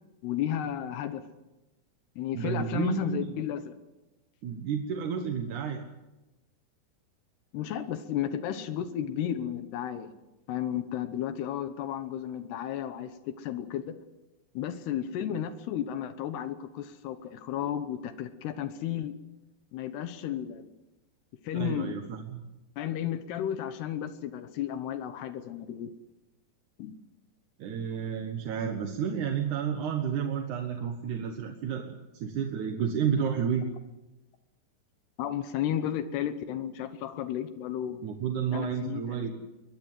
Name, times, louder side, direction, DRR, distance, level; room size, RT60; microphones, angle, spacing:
voice 1, 0.2-1.2 2.2-3.8 7.5-14.0 14.5-19.2 19.7-20.7 21.4-21.9 22.8-25.9 26.8-27.0 35.2-38.0 38.5-39.3, left 10 dB, 80° left, 10 dB, 3.1 m, -33 dB
voice 2, 2.3-3.3 4.4-5.8 21.5-22.4 27.6-33.7 38.0-39.4, right 7 dB, 60° right, 5 dB, 2.4 m, -31 dB
22.0 x 21.0 x 7.7 m, 1.0 s
omnidirectional pair, 4.7 m